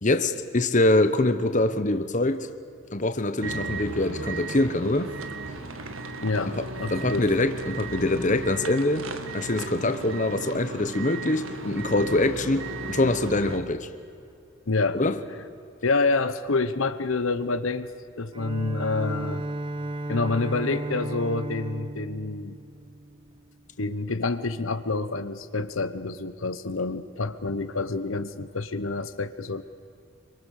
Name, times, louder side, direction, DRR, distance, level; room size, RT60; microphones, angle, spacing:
voice 1, 0.0-2.5 2.9-5.1 6.4-6.7 6.9-9.1 9.3-13.9 14.9-15.2, left 2 dB, 35° left, 1.1 m, -24 dB
sound 1, 3.4-13.6, right 2 dB, 80° right, 1.7 m, -35 dB
voice 2, 6.2-7.3 14.7-15.0 15.8-17.9 18.2-19.4 20.1-22.6 23.8-29.6, left 3 dB, 75° left, 1.0 m, -27 dB
Bowed string instrument, 18.3-23.4, right 1 dB, 25° right, 0.8 m, -34 dB
26.5 x 24.5 x 6.6 m
head